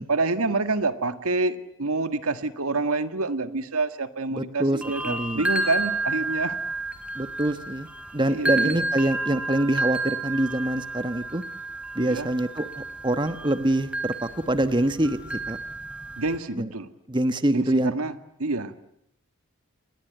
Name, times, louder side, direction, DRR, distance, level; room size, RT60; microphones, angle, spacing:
voice 1, 0.1-6.6 8.3-8.8 12.1-12.3 16.2-16.9 17.5-18.1 18.4-18.7, right 3 dB, 85° right, 11 dB, 1.7 m, -27 dB
voice 2, 4.3-4.8 5.0-5.4 7.1-11.4 11.9-15.6 16.6-16.7 17.1-17.9, right 1 dB, 20° right, 11 dB, 1.1 m, -25 dB
sound 1, 4.8-16.4, right 2 dB, 5° right, 3.3 m, -31 dB
29.0 x 21.0 x 9.1 m, 0.73 s
head